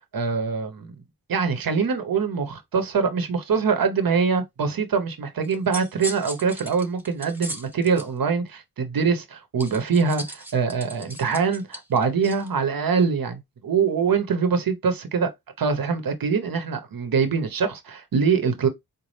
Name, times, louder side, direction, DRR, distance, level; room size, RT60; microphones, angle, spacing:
voice 1, 0.1-0.9 1.3-15.3 15.6-18.7, right 5 dB, 60° right, 1.0 m, -24 dB
sound 1, 5.4-8.1 9.6-12.5, right 2 dB, 5° right, 1.0 m, -37 dB
4.1 x 2.4 x 3.2 m
cardioid pair, 55°, 39 cm